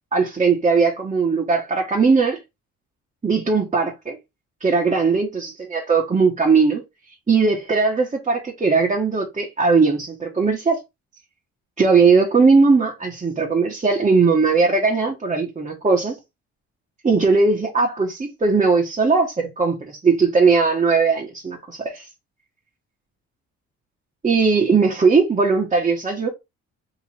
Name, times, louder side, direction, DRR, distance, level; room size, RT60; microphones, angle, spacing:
voice 1, 0.1-2.4 3.2-4.2 4.6-6.8 7.3-10.8 11.8-16.2 17.0-22.1 24.2-26.3, right 4 dB, 25° right, 1.2 m, -19 dB
3.1 x 2.9 x 4.3 m
cardioid pair, 90°, 30 cm